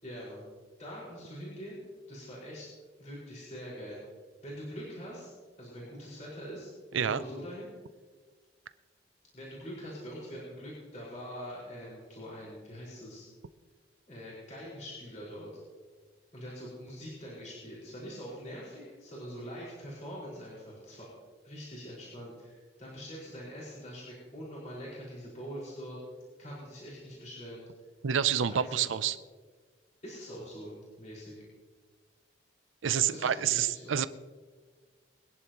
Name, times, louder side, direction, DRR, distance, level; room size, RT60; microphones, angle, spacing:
voice 1, 0.0-0.4 0.8-1.8 2.1-2.7 3.0-4.0 4.4-5.3 5.6-7.7 9.3-13.3 14.1-15.5 16.3-21.1 21.4-26.0 26.4-27.6 28.4-29.0 30.0-31.3 33.0-33.9, equal, 40° left, -7 dB, 5.1 m, -43 dB
voice 2, 28.0-29.2 32.8-34.1, right 8 dB, 90° right, 15 dB, 0.5 m, -28 dB
23.5 x 11.0 x 3.0 m, 1.5 s
head